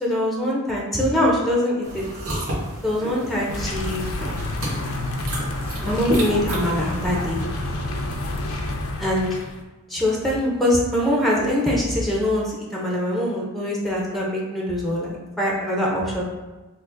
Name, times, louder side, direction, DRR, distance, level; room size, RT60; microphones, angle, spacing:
voice 1, 0.0-2.0 2.8-4.1 5.8-7.4 9.0-9.3 9.9-16.2, left 1 dB, ahead, -4 dB, 0.5 m, -23 dB
sound 1, 1.8-7.4, equal, 85° right, 1.2 m, -32 dB
sound 2, 3.5-9.6, left 2 dB, 70° left, 0.5 m, -29 dB
5.8 x 2.1 x 2.5 m, 1.2 s
head